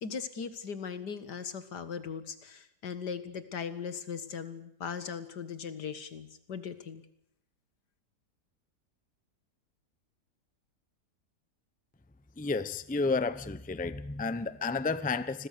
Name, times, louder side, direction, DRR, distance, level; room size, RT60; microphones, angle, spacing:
voice 1, 0.0-7.0, left 6 dB, 80° left, 2.2 m, -39 dB
voice 2, 12.4-15.5, left 4 dB, 10° left, 0.5 m, -31 dB
29.0 x 22.0 x 6.8 m
omnidirectional pair, 1.8 m